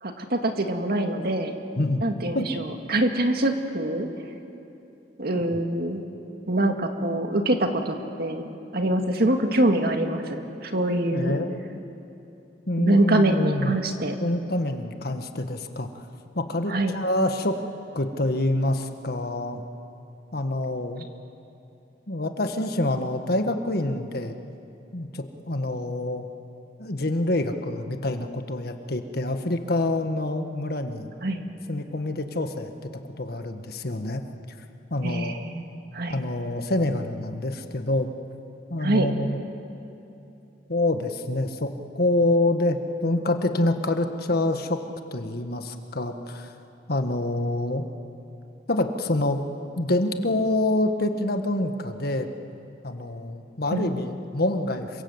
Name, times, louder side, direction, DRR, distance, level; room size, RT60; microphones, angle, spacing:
voice 1, 0.0-1.6 2.0-4.1 5.2-6.0 6.5-8.4 8.7-11.3 12.8-14.2 16.7-17.0 31.2-31.4 35.0-36.2 38.8-39.1 53.7-54.0, right 1 dB, 60° right, 4 dB, 2.1 m, -24 dB
voice 2, 11.1-11.6 12.7-13.7 14.2-16.0 16.3-17.6 17.9-19.6 20.3-21.1 22.1-24.4 24.9-26.3 26.8-31.1 31.7-32.9 33.2-34.2 34.9-35.4 36.1-38.1 38.7-39.4 40.7-44.8 45.1-46.5 46.9-47.8 48.7-49.4 49.8-52.3 52.8-55.0, left 1 dB, 60° left, 6 dB, 1.6 m, -26 dB
27.5 x 24.5 x 8.1 m, 2.9 s
head